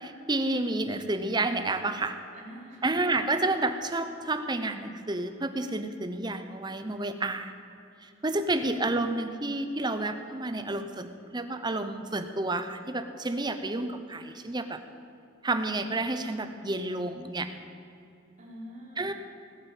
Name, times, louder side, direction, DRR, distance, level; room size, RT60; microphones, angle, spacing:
voice 1, 0.0-2.2 2.8-7.5 8.0-14.8 15.4-17.5 19.0-19.1, right 2 dB, 20° right, 8 dB, 0.9 m, -30 dB
voice 2, 2.3-3.2 18.4-19.1, equal, 40° right, -6 dB, 4.6 m, -47 dB
19.5 x 8.7 x 7.4 m, 2.7 s
head